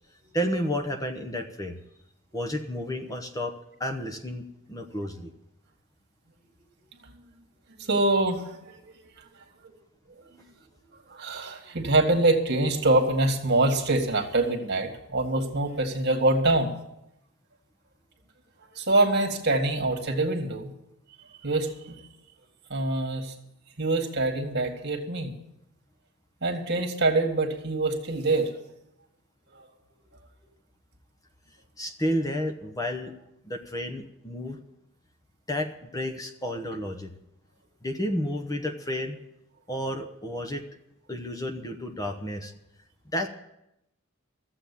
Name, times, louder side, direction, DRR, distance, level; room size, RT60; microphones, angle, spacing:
voice 1, 0.3-1.8 2.3-3.5 3.8-5.3 31.8-33.1 33.4-34.6 35.5-37.1 37.8-39.2 39.7-40.6 41.1-42.5 43.1-43.3, equal, 15° left, 5 dB, 1.0 m, -31 dB
voice 2, 7.8-8.4 8.7-8.8 11.1-16.8 18.8-20.7 21.4-22.0 22.7-23.3 23.8-25.3 26.4-28.5 29.6-29.7, right 2 dB, 55° right, 4 dB, 2.0 m, -25 dB
14.0 x 7.8 x 8.5 m, 0.84 s
head